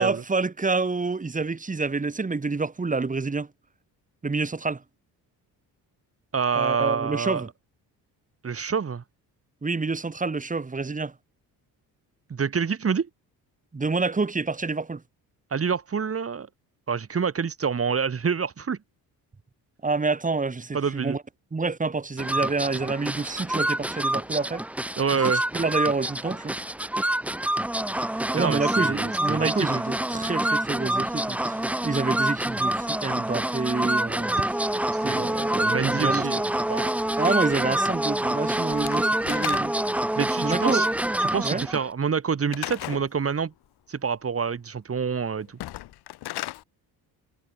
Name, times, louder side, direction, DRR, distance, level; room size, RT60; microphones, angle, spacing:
voice 1, 0.0-3.5 4.2-4.8 6.5-7.5 9.6-11.1 13.7-15.0 19.8-21.2 21.5-24.6 25.1-26.6 28.3-34.4 35.0-36.3 37.2-39.7 40.4-40.9 41.4-41.7, right 3 dB, 20° right, 2.2 m, -28 dB
voice 2, 6.3-7.4 8.4-9.0 12.3-13.1 15.5-16.5 16.9-18.8 20.7-21.2 25.0-25.4 28.3-29.5 34.7-36.4 36.7-36.9 40.1-40.9 41.3-43.5 43.9-45.6, right 6 dB, 35° right, 3.3 m, -27 dB
sound 1, 22.2-41.9, right 1 dB, 5° right, 0.8 m, -26 dB
Slam / Wood, 38.7-40.0 42.5-43.1 45.5-46.6, left 16 dB, 85° left, 4.8 m, -35 dB
cardioid pair, 95°, 38 cm